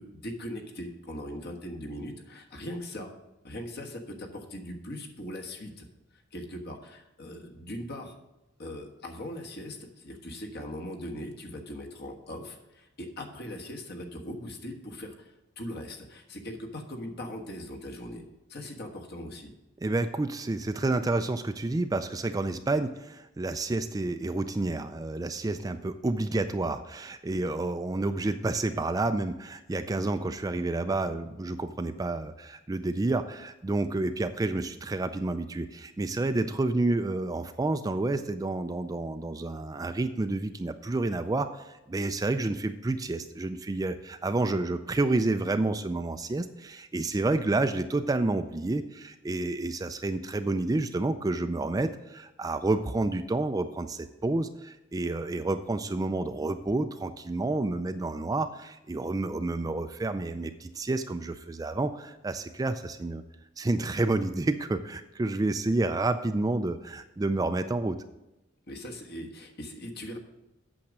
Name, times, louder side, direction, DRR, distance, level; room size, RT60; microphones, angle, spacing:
voice 1, 0.0-3.1 3.4-5.9 6.3-8.1 8.6-18.2 18.5-19.5 68.7-70.2, left 1 dB, 55° left, 2 dB, 1.4 m, -40 dB
voice 2, 19.8-63.2 63.6-68.0, right 2 dB, 20° right, 9 dB, 0.3 m, -29 dB
8.7 x 6.5 x 6.0 m, 0.95 s
head